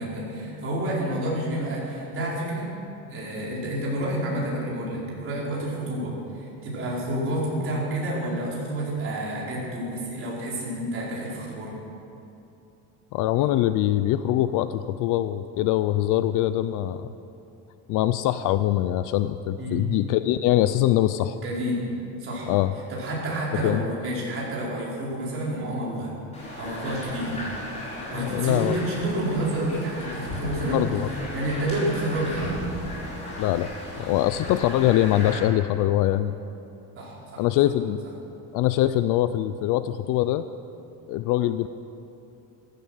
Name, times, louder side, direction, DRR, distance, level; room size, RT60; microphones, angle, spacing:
voice 1, 0.0-2.7 3.1-11.7 19.6-19.8 21.4-21.8 22.2-22.5 22.9-26.1 26.5-27.5 28.1-30.8 31.1-32.5 37.0-37.4, right 1 dB, 30° right, -5 dB, 4.6 m, -29 dB
voice 2, 13.1-17.1 17.9-21.4 22.5-22.7 23.6-23.8 28.1-28.8 30.6-31.1 33.4-33.7 34.0-36.3 37.4-38.0 38.5-40.4 41.1-41.7, left 13 dB, 50° left, 12 dB, 0.5 m, -23 dB
sound 1, 26.3-35.3, equal, 15° left, 5.0 m, -35 dB
15.0 x 14.5 x 6.4 m, 2.8 s
cardioid pair, 170°, 42 cm